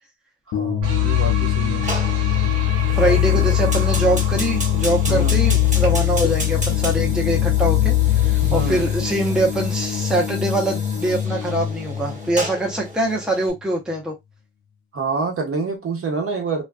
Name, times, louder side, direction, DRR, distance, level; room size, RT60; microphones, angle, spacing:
sound 1, 0.5-13.6, left 8 dB, 65° left, 0.5 m, -27 dB
voice 1, 0.5-1.9 3.1-3.6 5.1-5.4 8.4-8.9 14.9-16.6, right 4 dB, 45° right, 1.1 m, -27 dB
sound 2, 0.8-9.9, left 13 dB, 90° right, 1.1 m, -21 dB
Fire, 1.8-13.5, right 1 dB, 25° right, 1.2 m, -34 dB
voice 2, 2.9-14.2, right 1 dB, 5° right, 0.6 m, -23 dB
2.4 x 2.2 x 2.3 m
cardioid pair, 90°, 30 cm